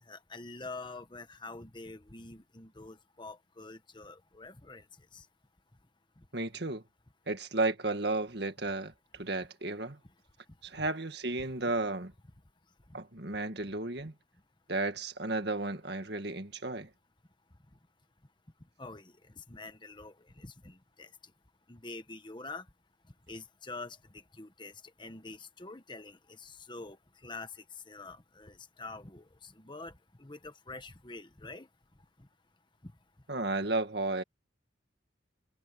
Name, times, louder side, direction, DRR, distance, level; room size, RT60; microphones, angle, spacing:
voice 1, 0.1-4.8 5.1-5.3 18.8-21.1 21.7-22.6 23.3-24.7 25.0-27.0 27.2-29.9 30.2-31.7, left 3 dB, 25° left, 1.3 m, -46 dB
voice 2, 6.3-6.8 7.3-10.0 10.6-12.1 12.9-14.1 14.7-16.9 33.3-34.2, right 2 dB, 55° right, 2.0 m, -33 dB
head